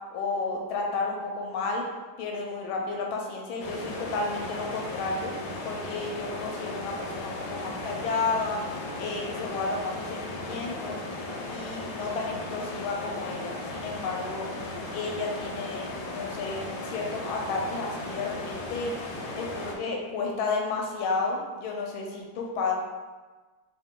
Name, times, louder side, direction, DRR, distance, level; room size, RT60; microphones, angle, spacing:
voice 1, 0.1-1.8 2.2-5.3 5.6-8.6 9.0-11.0 11.5-14.5 14.9-18.9 19.4-22.7, left 3 dB, 85° left, 0 dB, 1.5 m, -32 dB
sound 1, 3.6-19.7, left 2 dB, 65° left, 1.1 m, -36 dB
3.8 x 2.6 x 3.6 m, 1.3 s
omnidirectional pair, 2.2 m